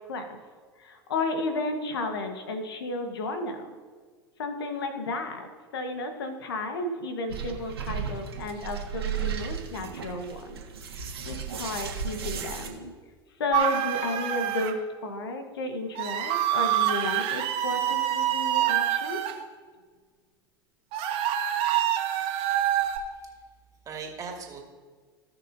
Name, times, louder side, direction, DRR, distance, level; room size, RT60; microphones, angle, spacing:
voice 1, 0.8-3.7 4.4-10.6 10.9-12.9 13.4-19.2, left 2 dB, 75° left, 6 dB, 1.3 m, -33 dB
sound 1, 7.3-12.7, right 7 dB, 80° right, 1.7 m, -35 dB
sound 2, 13.5-14.7 16.0-19.3 20.9-23.0, right 11 dB, 45° right, 1.4 m, -26 dB
voice 2, 22.8-23.4 23.9-24.6, right 5 dB, 25° right, 0 dB, 2.3 m, -40 dB
17.5 x 6.2 x 2.7 m, 1.5 s
figure-of-eight pair, 85°, 13 cm